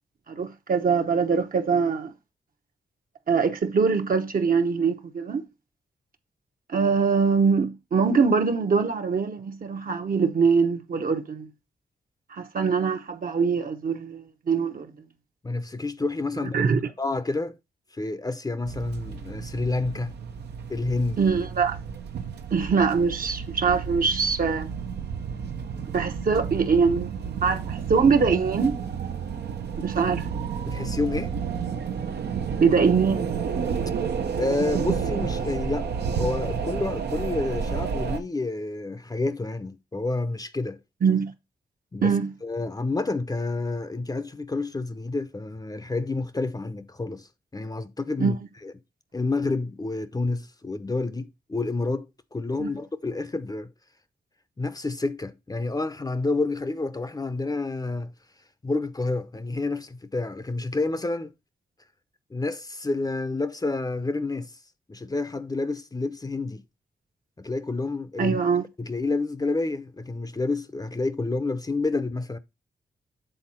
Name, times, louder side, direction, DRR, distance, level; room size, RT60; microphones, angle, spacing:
voice 1, 0.3-2.1 3.3-5.4 6.7-11.5 12.3-14.9 16.5-16.8 21.2-21.8 22.5-24.7 25.9-27.1 27.4-28.8 29.8-30.3 32.6-33.3 41.0-41.3 42.0-42.3 48.2-48.3 52.6-52.7 68.2-68.6, right 5 dB, 55° right, 0.9 m, -23 dB
voice 2, 15.4-16.7 17.0-17.6 17.9-20.1 20.7-21.2 30.6-31.3 34.3-40.8 41.9-42.1 42.4-48.4 48.6-48.7 49.1-53.7 54.6-58.1 58.6-61.3 62.3-64.6 64.9-66.6 67.4-68.4 68.8-72.4, left 3 dB, 20° left, 0.6 m, -29 dB
sound 1, 18.7-38.2, right 6 dB, 85° right, 0.8 m, -31 dB
7.8 x 3.9 x 4.3 m
cardioid pair, 70°, 17 cm